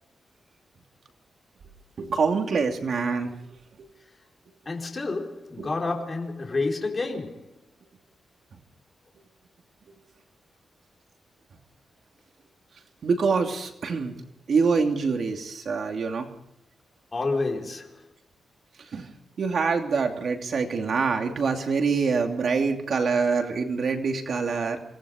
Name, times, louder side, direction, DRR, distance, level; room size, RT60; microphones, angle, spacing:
voice 1, 2.0-3.4 5.6-5.7 13.0-14.1 14.5-16.3 18.9-19.1 19.4-24.8, right 5 dB, 50° right, 2.8 m, -25 dB
voice 2, 4.7-7.6 17.1-18.0, left 3 dB, 25° left, 4.5 m, -29 dB
27.5 x 19.0 x 5.1 m
wide cardioid pair, 175°, 0 cm